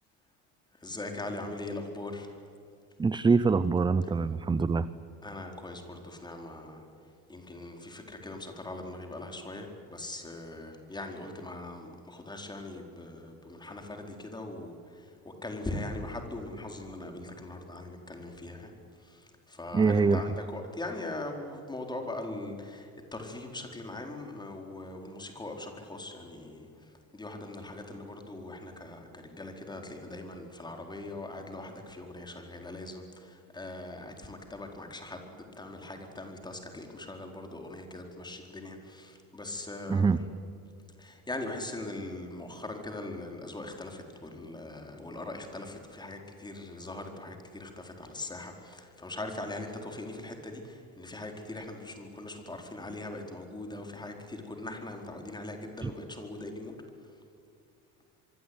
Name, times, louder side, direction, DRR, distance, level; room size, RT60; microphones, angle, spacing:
voice 1, 0.8-2.3 5.2-6.8 7.3-14.8 15.2-18.7 19.5-26.7 27.1-40.2 41.0-56.7, left 2 dB, 10° left, 3 dB, 4.4 m, -41 dB
voice 2, 3.0-4.9 19.7-20.3 39.9-40.2 55.8-55.9, right 4 dB, 15° right, 14 dB, 0.6 m, -24 dB
25.5 x 24.0 x 9.7 m, 2.5 s
cardioid pair, 140°, 35 cm